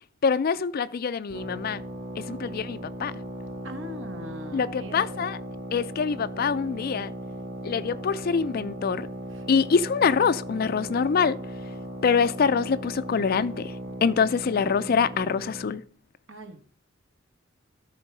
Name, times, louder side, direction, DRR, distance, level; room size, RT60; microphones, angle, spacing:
voice 1, 0.2-1.8 2.2-3.1 4.5-5.4 5.7-7.1 7.6-9.1 9.5-11.4 12.0-13.7 14.0-15.8, left 6 dB, 50° left, 0.4 m, -25 dB
sound 1, 1.3-15.8, right 1 dB, 40° right, 2.0 m, -37 dB
voice 2, 3.6-5.2 16.3-16.6, equal, 65° right, 1.3 m, -41 dB
13.0 x 4.5 x 4.9 m
head